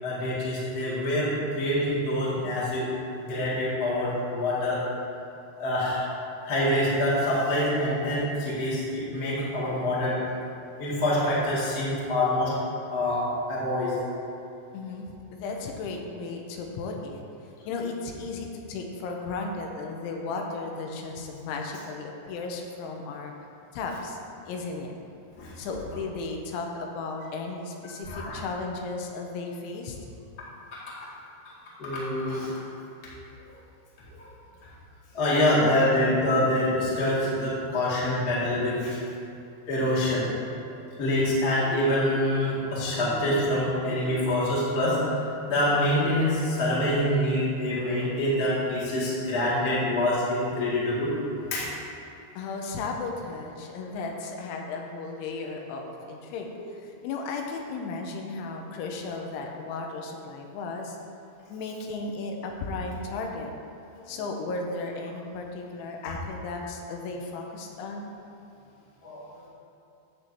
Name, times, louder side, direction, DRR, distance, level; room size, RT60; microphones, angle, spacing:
voice 1, 0.0-2.9 3.2-4.8 5.6-6.0 6.4-10.2 10.8-12.5 12.9-13.9 25.4-25.5 28.1-28.4 31.8-32.5 34.2-34.3 35.1-39.0 39.7-40.3 41.0-45.0 45.4-51.1 51.5-51.7 64.0-64.1 69.0-69.2, left 1 dB, 70° left, -9 dB, 0.8 m, -25 dB
voice 2, 14.7-17.2 17.7-23.3 23.7-24.2 24.5-24.9 25.6-30.0 52.4-61.0 61.5-63.5 64.1-68.1, left 3 dB, 85° left, 2 dB, 3.1 m, -35 dB
10.5 x 7.5 x 2.7 m, 2.7 s
omnidirectional pair, 5.5 m